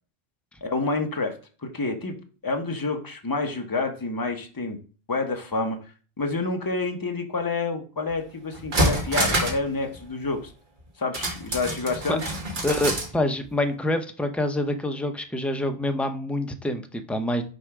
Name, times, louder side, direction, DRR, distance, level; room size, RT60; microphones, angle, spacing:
voice 1, 0.6-1.3 1.6-2.1 2.4-4.8 5.1-5.8 6.2-10.5 11.0-12.2, left 3 dB, 20° left, 5 dB, 0.8 m, -28 dB
sound 1, 8.1-8.2 8.5-9.7 9.9-10.0 11.1-13.1 13.4-13.5, right 1 dB, 50° right, 1.5 m, -26 dB
voice 2, 12.6-17.4, left 1 dB, ahead, 6 dB, 0.3 m, -26 dB
6.3 x 3.3 x 4.7 m, 0.38 s
omnidirectional pair, 1.1 m